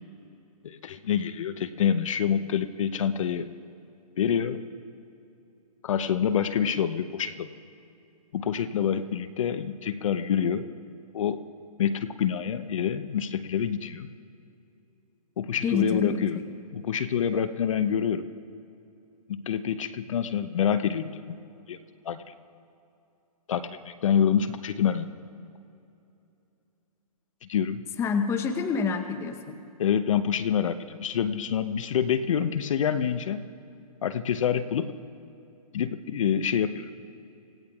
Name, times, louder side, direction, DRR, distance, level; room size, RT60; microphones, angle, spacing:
voice 1, 0.6-3.5 4.2-4.6 5.8-7.5 8.3-10.6 11.1-11.4 11.8-14.1 15.4-16.4 16.7-18.2 19.3-21.4 21.7-21.8 22.0-22.2 23.5-25.1 27.5-27.8 29.8-33.5 34.0-34.9 35.7-36.9, left 8 dB, 55° left, 11 dB, 0.8 m, -27 dB
voice 2, 15.6-16.2 28.0-29.5, left 5 dB, 15° left, 7 dB, 0.9 m, -27 dB
27.0 x 16.5 x 2.4 m, 2.7 s
hypercardioid pair, 135°, 20 cm